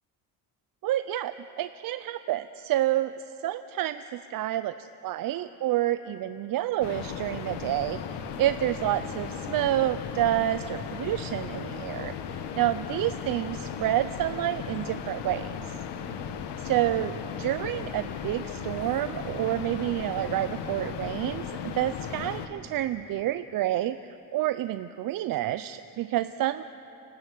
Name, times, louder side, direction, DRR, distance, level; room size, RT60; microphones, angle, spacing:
voice 1, 0.8-15.7 16.6-17.1 17.4-26.6, right 13 dB, 55° right, 12 dB, 0.5 m, -29 dB
sound 1, 6.8-22.5, left 7 dB, 80° left, 1.4 m, -36 dB
29.0 x 12.5 x 8.3 m, 3.0 s
cardioid pair, 145°, 40 cm